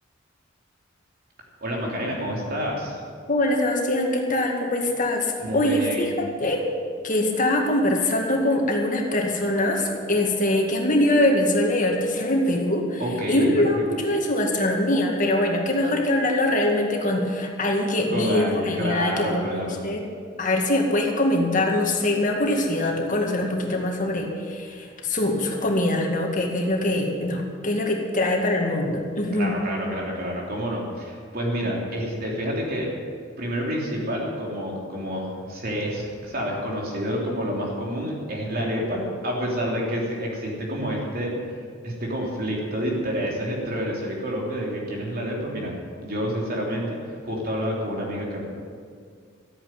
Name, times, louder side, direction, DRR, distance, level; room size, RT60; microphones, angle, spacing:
voice 1, 1.6-3.0 5.4-6.1 13.0-13.8 18.1-19.8 29.3-32.9 33.4-41.6 41.8-48.4, equal, 50° right, -2 dB, 3.5 m, -28 dB
voice 2, 3.3-6.6 7.0-13.0 13.3-19.5 19.8-20.0 20.4-29.5 31.6-31.8, left 1 dB, 45° left, 1 dB, 2.1 m, -23 dB
13.5 x 9.3 x 9.4 m, 2.1 s
head